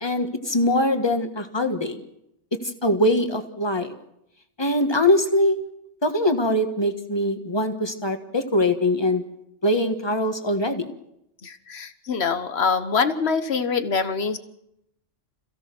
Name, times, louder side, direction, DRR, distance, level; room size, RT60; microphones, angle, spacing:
voice 1, 0.0-2.0 2.5-3.9 4.6-5.6 6.0-9.2 9.6-10.9, left 1 dB, 20° left, 7 dB, 1.6 m, -22 dB
voice 2, 11.4-14.4, left 5 dB, 60° left, 11 dB, 1.5 m, -24 dB
27.0 x 16.5 x 6.1 m, 0.81 s
omnidirectional pair, 1.2 m